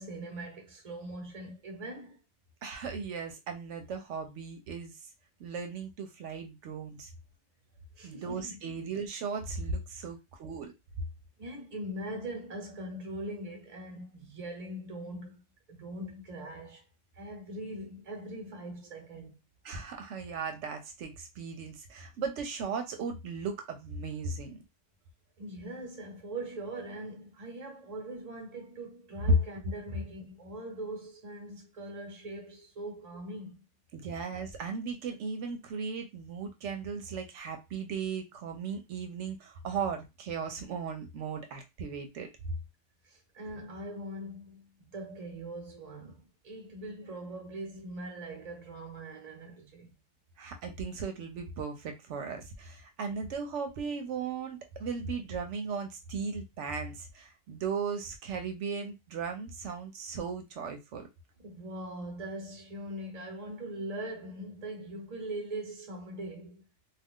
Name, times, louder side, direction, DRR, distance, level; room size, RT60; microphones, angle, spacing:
voice 1, 0.0-2.2 7.9-8.6 11.4-15.4 15.7-16.9 17.1-19.4 25.4-33.7 43.0-49.9 61.4-66.7, right 1 dB, 35° right, 0.9 m, -41 dB
voice 2, 2.6-5.0 5.4-7.1 8.0-10.7 19.6-24.6 33.9-42.3 50.4-61.1, right 5 dB, 80° right, 0.9 m, -37 dB
2.4 x 2.3 x 3.5 m
omnidirectional pair, 1.2 m